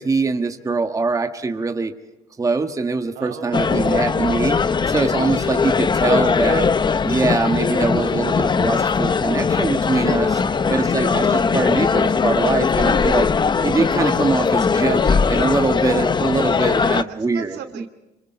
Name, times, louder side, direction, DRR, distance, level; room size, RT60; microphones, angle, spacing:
voice 1, 0.0-1.9 2.4-4.6 4.9-6.7 7.0-10.4 10.7-13.3 13.6-17.6, right 3 dB, 20° right, 6 dB, 1.5 m, -22 dB
voice 2, 3.1-4.0 10.2-10.7 16.4-17.9, right 9 dB, 80° right, 8 dB, 2.5 m, -37 dB
sound 1, 3.5-17.0, left 5 dB, 25° left, 0.8 m, -20 dB
27.0 x 24.5 x 4.7 m, 0.97 s
cardioid pair, 110°, 17 cm